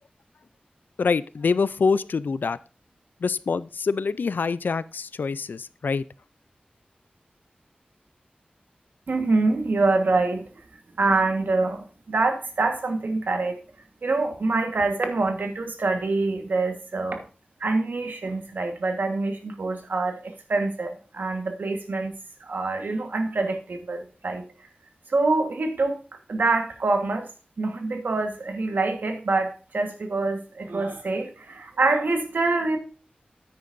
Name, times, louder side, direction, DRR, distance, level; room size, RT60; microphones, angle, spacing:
voice 1, 1.0-2.6 3.2-6.0, left 5 dB, 85° left, 0.3 m, -25 dB
voice 2, 9.1-10.5 11.0-13.6 14.0-17.2 17.6-22.1 22.4-24.4 25.1-26.0 26.3-27.3 27.6-32.8, right 3 dB, 85° right, 1.3 m, -25 dB
9.6 x 8.9 x 2.6 m
wide cardioid pair, 80°, 3 cm